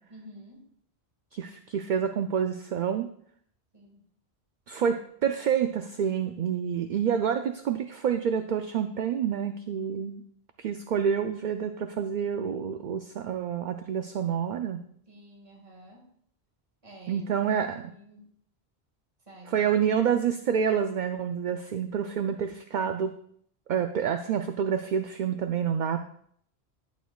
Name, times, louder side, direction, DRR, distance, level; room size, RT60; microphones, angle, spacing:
voice 1, 0.1-0.7 3.7-4.0 15.1-16.0 16.8-17.4 17.8-18.3 19.3-19.7, right 1 dB, 30° right, -2 dB, 1.9 m, -49 dB
voice 2, 1.3-3.1 4.7-10.2 10.6-14.8 17.1-17.8 19.5-23.1 23.7-26.0, right 7 dB, 55° right, 7 dB, 0.6 m, -28 dB
11.0 x 8.2 x 2.3 m, 0.65 s
omnidirectional pair, 1.1 m